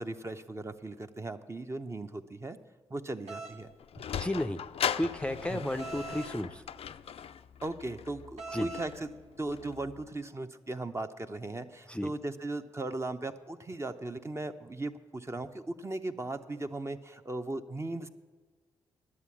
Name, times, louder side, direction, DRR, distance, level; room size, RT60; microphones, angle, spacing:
voice 1, 0.0-2.6 2.9-3.7 5.5-5.7 7.6-9.1 9.4-18.1, right 2 dB, 25° right, 7 dB, 0.8 m, -37 dB
sound 1, 3.3-3.6 5.8-6.3 8.4-8.9, right 3 dB, 80° right, 1.1 m, -41 dB
Sliding door, 3.5-10.1, left 9 dB, 60° left, 0.4 m, -39 dB
voice 2, 4.1-4.6 5.0-6.6 8.5-8.7 11.9-12.1, left 1 dB, 10° left, 8 dB, 0.6 m, -33 dB
11.0 x 7.6 x 7.2 m, 1.4 s
supercardioid pair, 45°, 11 cm